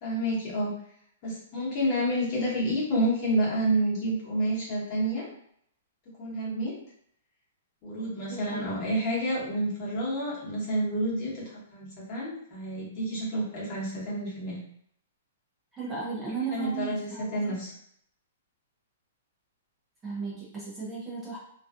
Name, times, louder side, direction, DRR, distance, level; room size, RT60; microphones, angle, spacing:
voice 1, 0.0-0.7 1.2-5.3 6.2-6.7 7.8-11.4 11.7-14.6 16.5-17.7, right 1 dB, 35° left, -6 dB, 1.1 m, -29 dB
voice 2, 8.3-8.7 15.7-17.6 20.0-21.4, right 5 dB, 10° right, -7 dB, 0.5 m, -35 dB
2.4 x 2.3 x 2.4 m, 0.68 s
hypercardioid pair, 160°, 0 cm